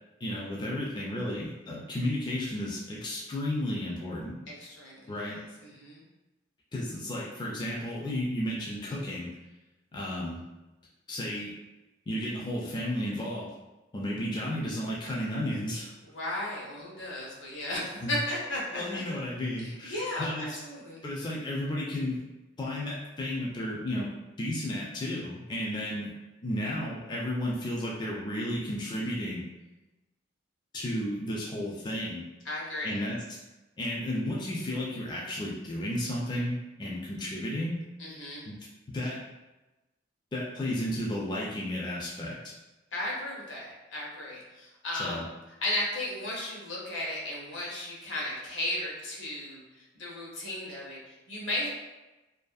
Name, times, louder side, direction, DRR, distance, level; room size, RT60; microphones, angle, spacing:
voice 1, 0.2-4.4 5.1-5.4 6.7-9.3 9.9-10.4 11.1-11.5 12.1-13.5 13.9-15.9 18.0-18.1 18.7-20.5 21.0-22.2 22.6-24.1 24.4-26.1 26.4-29.5 30.7-32.3 32.8-33.4 33.8-37.8 38.5-38.6 38.9-39.2 40.3-42.4 44.9-45.2, left 1 dB, 25° left, -4 dB, 0.3 m, -33 dB
voice 2, 4.5-6.0 16.0-19.0 19.6-21.0 32.4-32.9 38.0-38.5 42.9-45.2 45.6-51.7, left 1 dB, 85° left, -4 dB, 0.8 m, -35 dB
2.6 x 2.4 x 2.3 m, 1.1 s
head